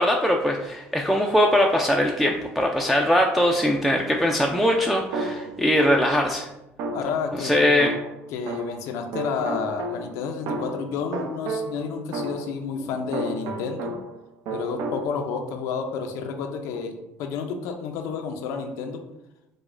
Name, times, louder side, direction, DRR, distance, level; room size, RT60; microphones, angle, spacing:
voice 1, 0.0-6.5 7.3-7.9, equal, ahead, 0 dB, 0.3 m, -21 dB
sound 1, 5.1-6.3 6.8-8.9 9.1-14.2 14.5-15.1, right 2 dB, 75° right, 0.5 m, -32 dB
voice 2, 6.9-7.7 8.3-13.9 14.5-19.0, left 5 dB, 80° left, 5 dB, 0.4 m, -30 dB
4.9 x 2.1 x 2.5 m, 0.91 s
supercardioid pair, 95°, 5 cm